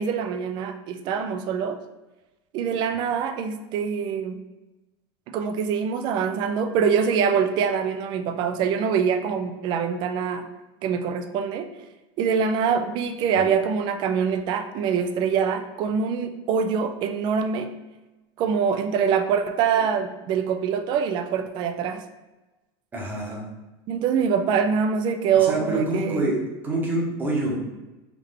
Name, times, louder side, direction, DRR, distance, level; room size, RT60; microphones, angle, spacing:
voice 1, 0.0-1.8 2.5-4.4 5.3-10.5 10.8-11.7 12.2-17.7 18.4-22.0 23.9-26.3, right 6 dB, 35° right, 8 dB, 0.3 m, -24 dB
voice 2, 22.9-23.4 25.4-26.4 26.6-27.5, right 2 dB, 15° right, -3 dB, 0.9 m, -26 dB
3.5 x 3.2 x 3.6 m, 1.1 s
supercardioid pair, 165°, 14 cm